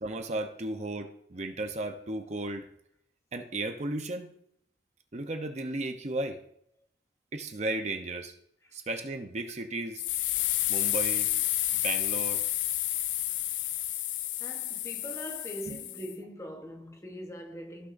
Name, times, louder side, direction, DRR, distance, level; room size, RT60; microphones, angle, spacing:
voice 1, 0.0-2.7 3.3-4.3 5.1-6.4 7.3-8.3 8.7-10.0 10.7-11.3 11.7-12.4 15.7-15.8, right 2 dB, 35° right, 0.7 m, -34 dB
sound 1, 10.0-16.1, left 14 dB, 85° left, 0.4 m, -30 dB
voice 2, 14.4-17.9, equal, 15° left, 1.0 m, -42 dB
14.5 x 6.1 x 2.6 m
head